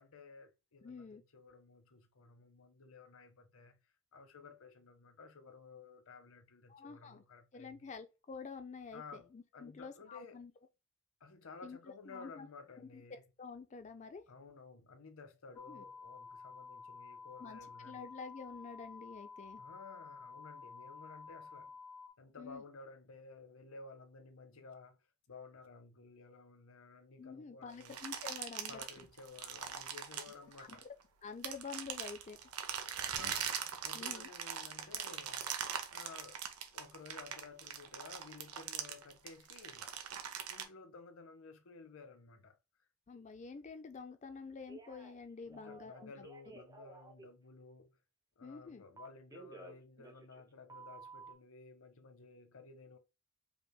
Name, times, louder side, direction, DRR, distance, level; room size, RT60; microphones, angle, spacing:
voice 1, 0.0-3.8 4.1-7.9 8.9-10.4 11.2-13.2 14.3-18.1 19.6-21.7 22.2-25.0 25.3-28.0 28.7-30.9 33.1-35.5 35.9-36.4 36.7-39.9 40.5-42.6 45.4-48.0 48.4-53.0, left 4 dB, 70° left, 0.8 m, -54 dB
voice 2, 0.8-1.2 6.7-7.2 7.5-10.5 11.6-12.5 12.8-14.3 15.7-15.8 17.4-19.6 22.4-22.6 27.2-28.8 30.2-30.3 30.6-30.9 31.2-32.4 33.9-34.3 43.1-46.3 48.4-48.8, left 5 dB, 30° left, 0.3 m, -48 dB
sound 1, 15.6-22.1, left 4 dB, 10° left, 0.8 m, -51 dB
sound 2, 27.8-31.0 31.4-40.6, right 8 dB, 85° right, 0.8 m, -41 dB
Telephone, 44.7-45.2 45.5-47.3 49.0-50.4 50.7-51.3, right 3 dB, 15° right, 0.6 m, -54 dB
5.0 x 3.3 x 2.2 m
head